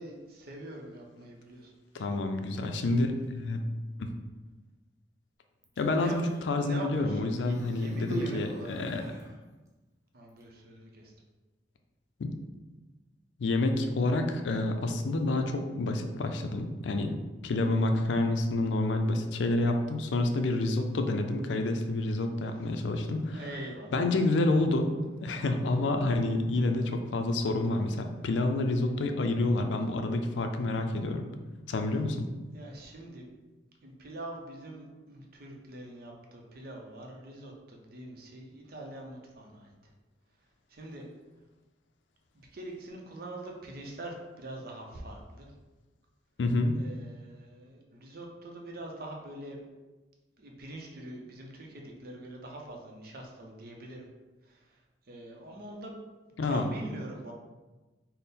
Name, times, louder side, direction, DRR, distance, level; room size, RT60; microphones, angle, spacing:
voice 1, 0.0-2.1 5.9-6.2 6.6-8.9 10.1-11.1 23.3-24.1 32.5-33.2 33.8-39.7 40.7-41.1 42.3-45.5 46.8-49.6 50.4-54.1 54.4-54.8 55.1-55.9 56.4-57.3, right 1 dB, 55° right, 0 dB, 0.6 m, -44 dB
voice 2, 1.9-3.6 4.0-4.1 5.8-9.0 12.2-12.3 13.4-17.1 17.4-23.4 23.9-24.9 25.2-31.3 31.7-32.3 46.4-46.8 56.4-56.6, left 2 dB, 85° left, 5 dB, 0.4 m, -28 dB
Human voice, 5.6-6.5 7.4-9.4 10.3-10.4, right 1 dB, 15° right, 0.5 m, -40 dB
3.5 x 2.1 x 4.2 m, 1.2 s
head